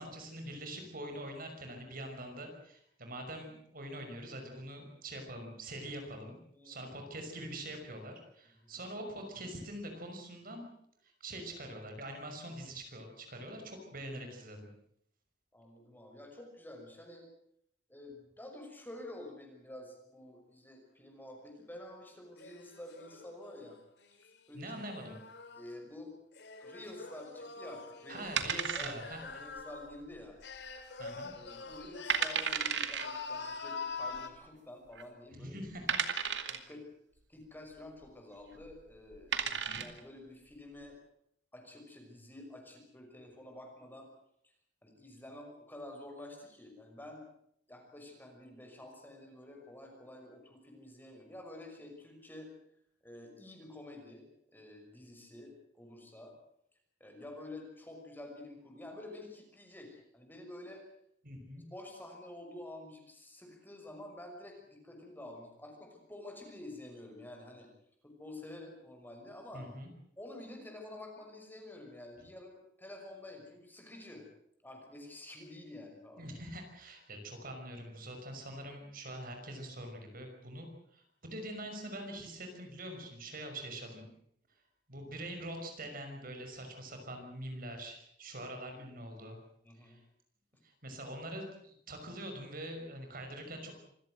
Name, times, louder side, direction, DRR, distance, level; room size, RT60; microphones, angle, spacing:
voice 1, 0.0-6.4 6.6-10.7 11.2-14.7 24.5-25.2 28.1-29.4 31.0-31.3 35.3-36.3 39.5-39.8 61.2-61.6 69.5-69.9 76.2-84.1 84.9-89.4 89.8-90.0 90.6-93.8, right 1 dB, 55° right, 4 dB, 5.9 m, -44 dB
voice 2, 6.5-6.8 8.6-8.8 15.5-17.3 17.9-23.8 24.5-24.6 25.5-26.1 26.6-28.2 28.7-30.4 31.2-35.9 36.5-36.9 37.3-41.0 41.5-44.1 44.8-47.3 47.7-52.5 53.0-54.2 54.5-56.4 57.0-60.9 61.6-67.7 68.0-69.7 70.2-74.3 74.6-76.2 89.6-90.0, left 1 dB, 10° left, 2 dB, 6.0 m, -49 dB
sound 1, 22.4-25.7 26.3-30.0 30.4-32.6 32.9-34.3, left 4 dB, 70° left, 2.5 m, -45 dB
sound 2, 28.4-29.3 29.6-29.7 30.3-30.7 31.1-31.2 31.7-31.8 32.1-33.1 34.1-34.2 34.9-35.0 35.9-36.7 38.5-38.7 39.1-40.0, right 7 dB, 80° right, 2.4 m, -33 dB
26.5 x 17.0 x 7.9 m, 0.69 s
head